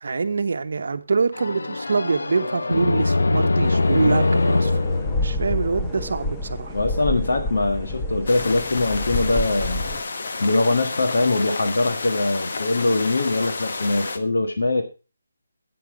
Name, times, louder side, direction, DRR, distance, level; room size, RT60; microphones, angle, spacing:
voice 1, 0.0-4.8 5.1-6.8, right 4 dB, 50° right, 10 dB, 1.0 m, -24 dB
sound 1, 1.3-6.1, left 2 dB, 90° left, 0.5 m, -22 dB
sound 2, 3.6-10.0, left 1 dB, 5° left, 0.7 m, -29 dB
voice 2, 6.7-10.0 10.4-14.8, left 2 dB, 65° left, 5 dB, 1.6 m, -22 dB
sound 3, 8.3-14.2, left 3 dB, 45° left, 1.1 m, -31 dB
9.3 x 8.7 x 4.8 m, 0.32 s
hypercardioid pair, 175°, 0 cm